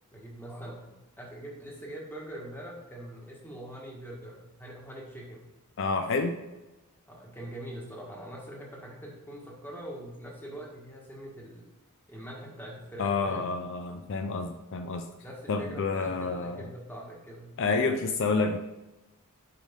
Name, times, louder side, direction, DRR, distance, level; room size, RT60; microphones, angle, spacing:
voice 1, 0.1-5.5 7.1-11.7 12.1-13.5 15.2-17.5, right 1 dB, 10° left, -2 dB, 1.7 m, -43 dB
voice 2, 5.8-6.4 13.0-15.0 15.5-16.6 17.6-18.6, left 4 dB, 60° left, 6 dB, 0.5 m, -29 dB
8.5 x 5.4 x 3.7 m, 1.1 s
head